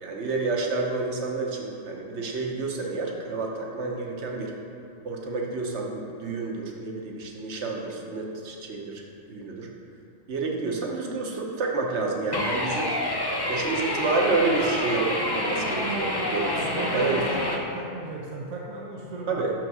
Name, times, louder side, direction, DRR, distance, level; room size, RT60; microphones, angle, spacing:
voice 1, 0.0-4.5 5.0-9.0 9.3-9.7 10.3-12.9 13.5-17.2 19.3-19.5, right 3 dB, 55° right, 0 dB, 1.1 m, -29 dB
sound 1, 12.3-17.6, left 1 dB, 35° left, 0.3 m, -28 dB
voice 2, 16.5-19.3, right 2 dB, 80° right, -3 dB, 1.3 m, -36 dB
6.2 x 5.8 x 6.1 m, 2.6 s
omnidirectional pair, 1.5 m